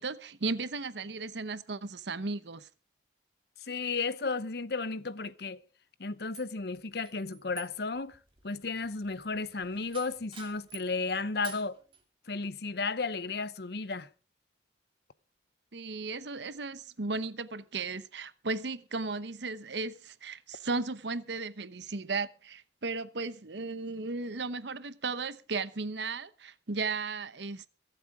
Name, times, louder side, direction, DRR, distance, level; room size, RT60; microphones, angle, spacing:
voice 1, 0.0-2.7 15.7-27.7, right 3 dB, 70° right, 0.9 m, -35 dB
voice 2, 3.6-5.6 6.0-8.2 8.4-11.8 12.3-14.1, left 4 dB, 60° left, 0.8 m, -34 dB
sound 1, 6.3-11.0 11.4-12.0, right 7 dB, 30° right, 2.5 m, -50 dB
23.0 x 7.9 x 4.8 m
head